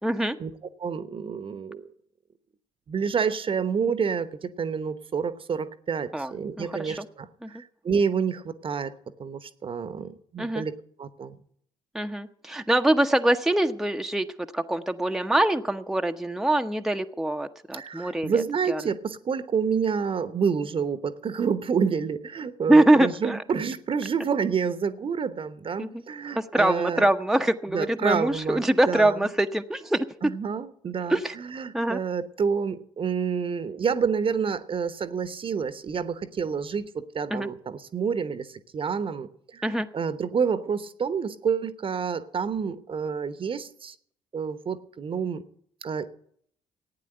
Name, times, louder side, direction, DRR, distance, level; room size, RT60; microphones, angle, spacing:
voice 1, 0.0-0.4 6.1-6.3 6.6-6.9 7.4-7.5 10.4-10.6 11.9-14.3 14.5-18.3 18.7-18.8 22.7-23.4 25.8-26.0 26.5-30.0 31.1-31.3 31.7-32.0 37.3-37.5 39.6-39.9, right 1 dB, 5° right, 6 dB, 0.8 m, -23 dB
voice 2, 0.8-1.9 2.9-8.9 9.2-11.4 17.7-27.1 27.7-29.3 30.2-43.9 44.3-45.4 45.8-46.1, right 6 dB, 40° right, 13 dB, 1.0 m, -28 dB
15.5 x 9.4 x 7.9 m, 0.65 s
figure-of-eight pair, 50°, 15 cm